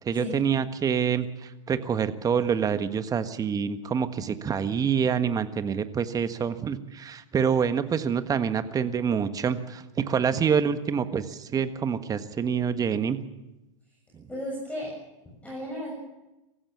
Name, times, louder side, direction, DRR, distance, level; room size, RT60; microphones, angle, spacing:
voice 1, 0.0-13.2, right 7 dB, 20° right, 10 dB, 1.5 m, -26 dB
voice 2, 14.3-14.9 15.2-15.9, equal, 10° left, -3 dB, 7.4 m, -34 dB
24.0 x 15.0 x 7.3 m, 0.98 s
hypercardioid pair, 105°, 16 cm